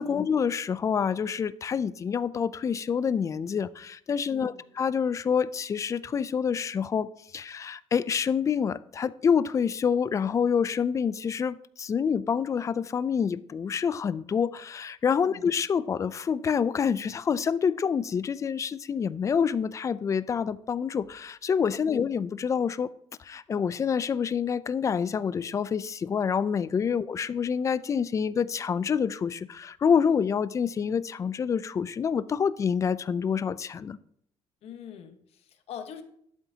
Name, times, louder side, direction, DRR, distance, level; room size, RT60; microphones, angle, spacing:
voice 1, 0.0-7.1 7.3-22.9 23.2-34.0, left 7 dB, 30° left, 17 dB, 0.3 m, -27 dB
voice 2, 4.3-4.6 15.2-15.5 21.8-22.0 34.6-36.0, left 8 dB, 65° left, 7 dB, 1.1 m, -44 dB
11.5 x 7.9 x 2.8 m, 0.69 s
cardioid pair, 135°, 11 cm